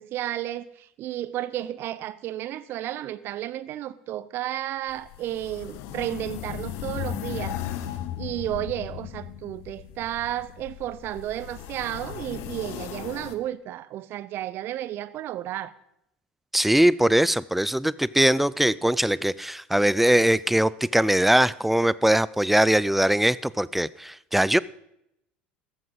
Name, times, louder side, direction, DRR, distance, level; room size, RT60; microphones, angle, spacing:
voice 1, 0.0-7.9 8.2-15.7, right 13 dB, 45° right, 0.7 m, -32 dB
sound 1, 4.9-13.4, left 12 dB, 55° left, 1.1 m, -36 dB
voice 2, 16.5-24.6, right 1 dB, 5° right, 0.4 m, -21 dB
15.0 x 12.5 x 3.9 m
figure-of-eight pair, 70°, 5 cm